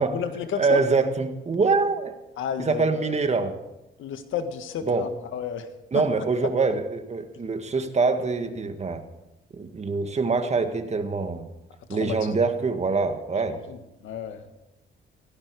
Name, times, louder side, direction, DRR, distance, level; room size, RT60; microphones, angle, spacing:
voice 1, 0.0-0.8 2.4-3.2 4.0-5.7 5.9-6.0 11.9-12.4 13.4-14.5, left 8 dB, 80° left, 8 dB, 1.8 m, -32 dB
voice 2, 0.6-2.1 2.6-3.6 4.9-5.1 5.9-9.0 9.5-11.5 11.9-13.6, right 4 dB, 35° right, 7 dB, 1.9 m, -24 dB
17.0 x 17.0 x 4.9 m, 0.93 s
cardioid pair, 90°, 20 cm